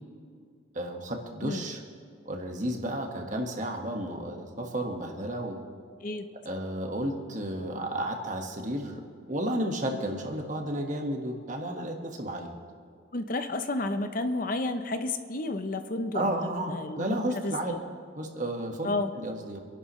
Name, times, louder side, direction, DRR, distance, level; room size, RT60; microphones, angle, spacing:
voice 1, 0.7-1.8 2.2-5.6 6.4-9.0 9.3-12.5 16.1-17.7 18.2-18.9 19.1-19.6, right 1 dB, 40° right, 2 dB, 1.6 m, -32 dB
voice 2, 13.1-17.2 17.4-17.8 18.8-19.1, left 2 dB, 45° left, 8 dB, 0.7 m, -31 dB
26.5 x 11.5 x 3.2 m, 2.2 s
head